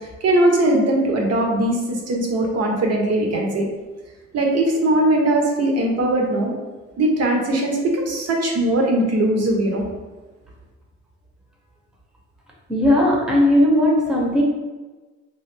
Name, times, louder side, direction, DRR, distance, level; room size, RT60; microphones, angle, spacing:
voice 1, 0.2-3.7 4.3-6.5 7.0-9.8, right 1 dB, 55° right, 1 dB, 0.8 m, -20 dB
voice 2, 12.7-14.4, left 1 dB, ahead, -3 dB, 0.8 m, -17 dB
3.1 x 2.3 x 3.3 m, 1.2 s
cardioid pair, 90°, 30 cm